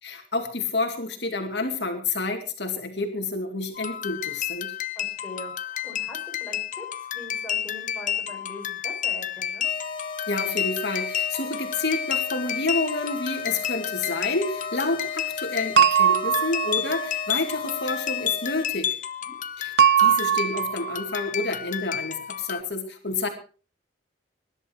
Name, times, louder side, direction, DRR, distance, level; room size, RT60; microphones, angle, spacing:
voice 1, 0.0-4.7 10.3-18.9 19.6-19.7 20.0-23.3, left 3 dB, 70° left, 4 dB, 2.4 m, -29 dB
sound 1, 3.7-22.6, left 10 dB, 50° left, 0.9 m, -31 dB
voice 2, 4.9-9.7 19.2-19.4, left 1 dB, 10° left, 0 dB, 5.9 m, -42 dB
sound 2, 9.6-18.6, left 3 dB, 30° left, 1.7 m, -36 dB
sound 3, 15.8-17.1 19.8-21.0, right 9 dB, 70° right, 0.6 m, -20 dB
20.0 x 11.0 x 4.6 m, 0.37 s
head